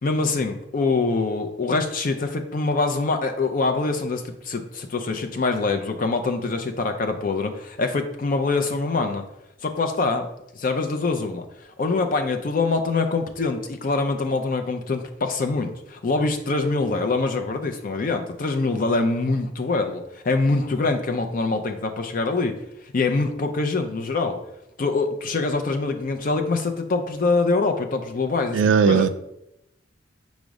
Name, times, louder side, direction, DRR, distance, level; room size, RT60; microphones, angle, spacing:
voice 1, 0.0-9.2 9.6-10.3 10.6-11.5 11.8-22.6 22.9-24.4 24.8-29.1, left 3 dB, 45° left, 6 dB, 0.5 m, -24 dB
voice 2, 28.5-29.1, right 6 dB, 75° right, 10 dB, 0.3 m, -17 dB
5.1 x 2.1 x 4.7 m, 0.84 s
head